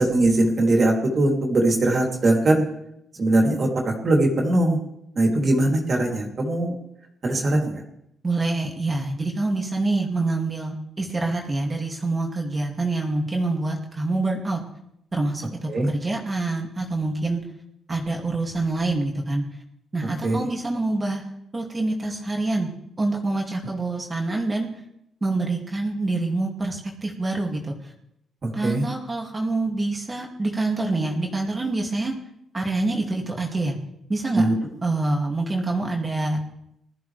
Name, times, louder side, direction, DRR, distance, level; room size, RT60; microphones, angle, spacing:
voice 1, 0.0-2.6 3.2-4.8 5.1-6.7 7.2-7.8 15.7-15.9 20.2-20.5 28.4-28.8 34.3-34.5, right 2 dB, 40° right, 0 dB, 3.2 m, -21 dB
voice 2, 8.2-14.6 15.1-17.4 17.9-19.4 19.9-22.7 23.0-24.7 25.2-27.9 28.5-32.1 32.5-33.8 34.1-34.4 34.8-36.4, right 2 dB, 25° right, 0 dB, 2.5 m, -26 dB
21.0 x 14.0 x 3.4 m, 0.78 s
cardioid pair, 115°, 0 cm